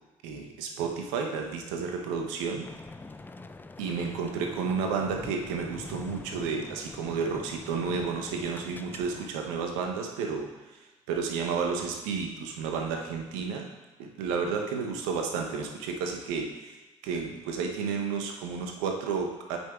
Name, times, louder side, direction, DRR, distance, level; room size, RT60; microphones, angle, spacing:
voice 1, 0.2-2.7 3.8-13.7 14.0-16.8 17.0-19.6, right 5 dB, 70° right, 2 dB, 0.8 m, -32 dB
sound 1, 2.6-9.3, left 3 dB, 10° left, 0.3 m, -45 dB
8.9 x 5.4 x 2.3 m, 1.1 s
figure-of-eight pair, 50°, 17 cm